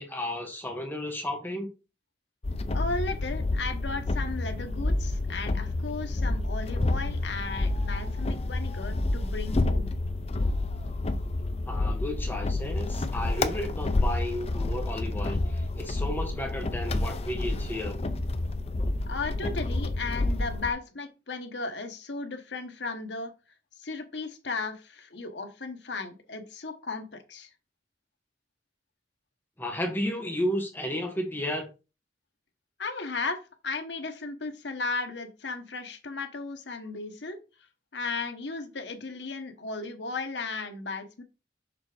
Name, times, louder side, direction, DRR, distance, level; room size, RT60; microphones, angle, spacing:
voice 1, 0.0-1.7 11.7-18.0 29.6-31.7, left 1 dB, 10° left, 3 dB, 1.2 m, -33 dB
sound 1, 2.4-20.7, left 2 dB, 35° left, 0.5 m, -29 dB
voice 2, 2.7-9.9 19.1-23.3 23.8-27.5 32.8-33.4 33.6-37.4 37.9-41.2, left 3 dB, 85° left, 7 dB, 1.1 m, -35 dB
6.6 x 3.4 x 4.9 m, 0.30 s
head